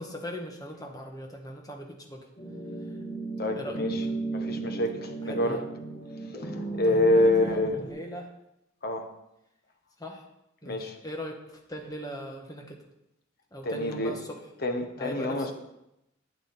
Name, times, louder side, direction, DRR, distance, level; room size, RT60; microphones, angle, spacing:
voice 1, 0.0-2.2 3.5-3.8 5.2-5.6 6.8-8.3 10.0-10.2 10.6-12.8 13.5-14.4 15.0-15.5, equal, 20° left, 1 dB, 1.6 m, -39 dB
sound 1, 2.4-7.9, right 3 dB, 35° left, 2.9 m, -35 dB
voice 2, 3.4-3.9 4.3-5.6 6.8-7.8 8.8-9.1 10.6-10.9 13.6-14.1 14.6-15.5, left 1 dB, 50° left, 5 dB, 1.3 m, -26 dB
12.0 x 8.8 x 4.4 m, 0.87 s
head